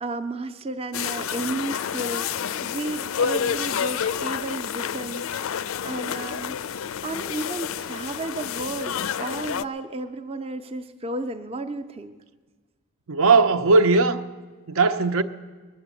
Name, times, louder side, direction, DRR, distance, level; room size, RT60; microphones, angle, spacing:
voice 1, 0.0-5.3 5.8-6.6 7.0-12.1, right 2 dB, 25° right, 0.5 m, -33 dB
sound 1, 0.9-9.6, left 8 dB, 75° left, 0.4 m, -29 dB
voice 2, 13.1-14.2 14.7-15.2, right 3 dB, 80° right, 0.6 m, -18 dB
20.5 x 7.9 x 8.2 m
head